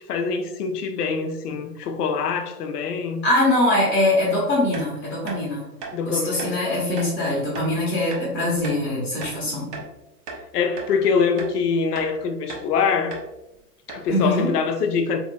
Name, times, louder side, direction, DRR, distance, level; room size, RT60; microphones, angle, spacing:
voice 1, 0.1-3.2 5.9-6.6 10.5-13.2 13.9-15.2, left 5 dB, 75° left, 0.6 m, -24 dB
voice 2, 3.2-5.7 6.0-9.7 14.1-14.5, left 1 dB, 25° left, 0.8 m, -22 dB
sound 1, 4.7-4.9 5.3-5.4 5.8-5.9 6.4-6.5 7.0-7.1 7.5-7.7 8.1-8.3 8.6-8.8 9.2-9.9 10.3-10.4 10.8-10.9 11.4-11.6 11.9-12.1 12.5-12.7 13.1-13.3 13.5-13.6 13.9-14.1, right 4 dB, 35° right, 0.6 m, -36 dB
2.6 x 2.5 x 2.2 m
hypercardioid pair, 115°, 47 cm